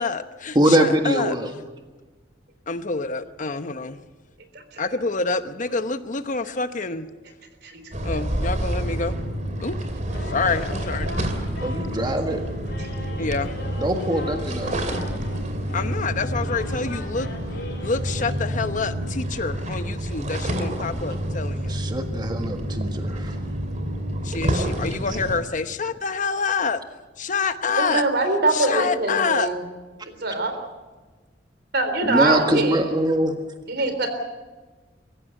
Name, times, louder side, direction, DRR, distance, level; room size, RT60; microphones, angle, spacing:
voice 1, 0.0-1.4 2.7-4.0 4.8-7.1 8.0-9.1 9.6-9.8 10.3-11.1 13.2-13.5 15.7-17.3 17.8-21.7 24.2-26.8 27.2-28.0 28.5-29.5, left 4 dB, 45° left, 10 dB, 1.0 m, -27 dB
voice 2, 0.5-1.5 11.6-12.4 13.8-14.7 21.7-23.4 24.9-25.0 32.0-33.4, right 1 dB, 25° right, 5 dB, 1.6 m, -23 dB
sound 1, 7.9-25.4, equal, 45° right, 2.7 m, -28 dB
sound 2, 10.1-18.3, left 1 dB, 65° left, 6.5 m, -38 dB
voice 3, 27.7-29.6 30.1-30.5 31.7-32.8 33.7-34.1, right 2 dB, 65° right, 7 dB, 3.8 m, -23 dB
24.0 x 15.0 x 8.9 m, 1.3 s
head